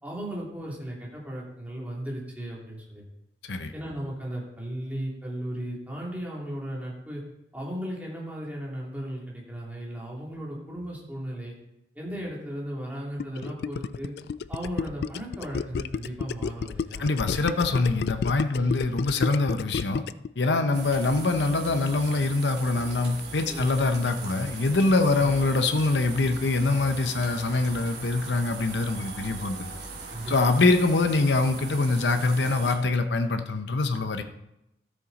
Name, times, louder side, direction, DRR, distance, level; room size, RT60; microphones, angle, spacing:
voice 1, 0.0-3.0 3.7-7.2 7.5-11.5 11.9-14.1 14.5-17.1 18.5-18.9 20.7-20.8 23.5-23.9 25.1-25.3 30.1-30.5, right 1 dB, 10° right, -4 dB, 2.8 m, -36 dB
Gurgling, 13.2-20.3, left 5 dB, 60° left, 0.3 m, -31 dB
voice 2, 17.0-20.0 20.4-29.7 30.3-34.2, left 3 dB, 80° left, 7 dB, 0.8 m, -24 dB
sound 1, 20.7-32.8, right 3 dB, 75° right, 2.4 m, -40 dB
13.0 x 7.5 x 4.1 m, 0.85 s
head